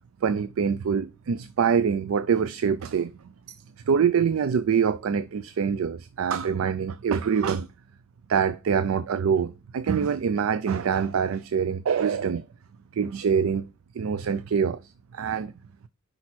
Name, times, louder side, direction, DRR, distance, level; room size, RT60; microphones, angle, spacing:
voice 1, 0.2-3.1 3.5-3.6 3.9-7.7 8.3-12.4 12.9-13.7 14.0-14.8 15.1-15.5, right 6 dB, 90° right, 0.4 m, -25 dB
5.3 x 4.2 x 6.0 m
head